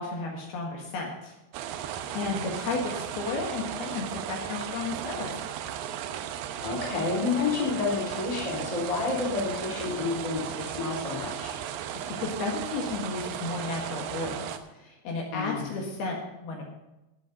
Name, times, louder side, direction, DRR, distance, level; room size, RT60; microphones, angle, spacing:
voice 1, 0.0-1.3 2.1-5.4 11.7-16.6, left 3 dB, 65° left, -1 dB, 3.5 m, -33 dB
sound 1, 1.5-14.6, right 9 dB, 80° right, 2.6 m, -36 dB
voice 2, 6.6-11.5 15.3-15.7, left 4 dB, 10° left, -4 dB, 3.3 m, -30 dB
15.0 x 8.3 x 5.3 m, 0.99 s
omnidirectional pair, 5.1 m